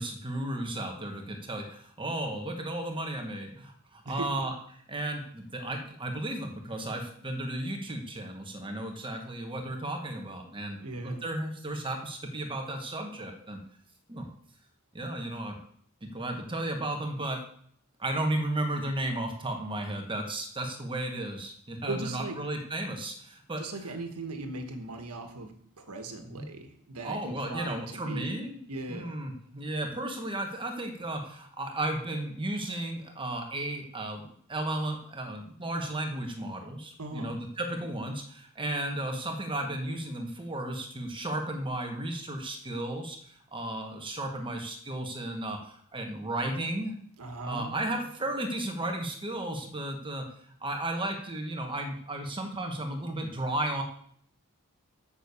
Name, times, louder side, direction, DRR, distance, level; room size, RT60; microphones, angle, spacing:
voice 1, 0.0-13.6 14.1-14.3 14.9-15.6 16.0-17.4 18.0-23.6 26.2-26.5 27.0-28.6 28.9-46.9 47.4-50.3 50.6-53.8, right 1 dB, 25° right, 3 dB, 1.4 m, -34 dB
voice 2, 10.8-11.2 21.9-22.4 23.6-28.3 28.7-29.1 37.0-37.3 47.2-48.0, right 2 dB, 85° right, 6 dB, 1.4 m, -38 dB
7.3 x 6.8 x 6.9 m, 0.62 s
head